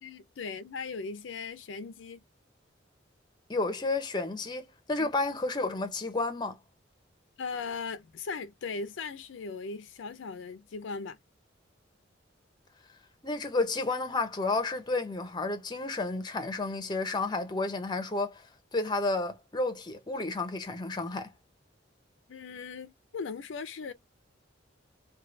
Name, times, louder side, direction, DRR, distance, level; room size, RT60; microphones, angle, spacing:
voice 1, 0.0-2.2 5.0-5.1 7.4-11.2 22.3-23.9, left 4 dB, 70° left, 0.4 m, -38 dB
voice 2, 3.5-6.6 13.2-18.4 18.7-21.3, left 3 dB, 20° left, 0.6 m, -31 dB
3.1 x 2.3 x 2.5 m
head